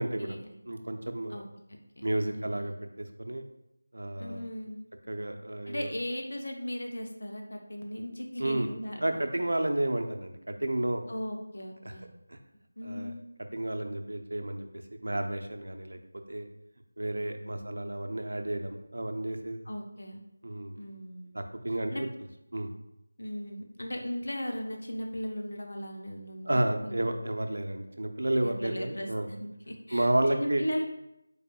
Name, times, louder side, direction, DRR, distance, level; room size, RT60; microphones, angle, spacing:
voice 1, 0.0-0.4 0.7-1.4 2.0-3.4 3.9-4.5 5.1-5.9 8.4-8.7 9.0-11.0 11.8-11.9 12.3-12.4 12.8-13.1 13.5-14.7 15.0-16.0 16.3-16.5 17.0-19.6 20.4-20.8 21.3-22.1 22.5-22.7 26.4-29.3 29.9-30.6, right 1 dB, 75° right, 5 dB, 0.6 m, -31 dB
voice 2, 1.3-2.1 2.3-2.7 4.2-4.8 5.7-9.2 11.1-12.1 12.8-13.2 17.4-18.0 19.6-20.2 20.8-21.3 21.9-22.1 23.2-27.0 28.4-30.8, equal, 70° left, 2 dB, 0.8 m, -38 dB
5.3 x 4.1 x 2.3 m, 0.83 s
figure-of-eight pair, 170°, 0 cm